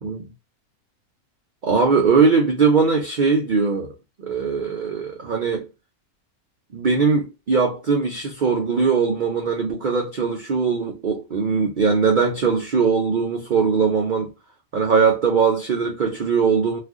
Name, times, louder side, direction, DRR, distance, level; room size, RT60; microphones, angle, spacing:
voice 1, 1.6-3.9 4.2-5.7 6.7-14.3 14.7-16.8, right 5 dB, 70° right, 0.4 m, -20 dB
2.5 x 2.4 x 3.4 m
omnidirectional pair, 1.5 m